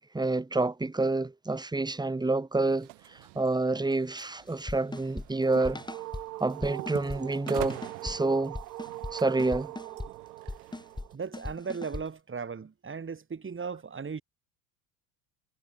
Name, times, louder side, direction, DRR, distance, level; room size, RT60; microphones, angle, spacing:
voice 1, 0.0-5.8 6.4-8.6 9.1-9.7, right 2 dB, 10° right, 1.5 m, -28 dB
sound 1, 2.7-11.0, right 40 dB or more, 70° right, 6.0 m, -47 dB
sound 2, 4.7-6.2 6.6-7.2 7.5-8.2 8.5-9.1 9.4-10.1 10.5-11.1 11.3-12.0, left 2 dB, 10° left, 3.2 m, -38 dB
sound 3, 5.0-11.2, right 16 dB, 85° right, 1.5 m, -42 dB
voice 2, 11.1-14.2, right 5 dB, 25° right, 5.3 m, -37 dB
hypercardioid pair, 80°, 47 cm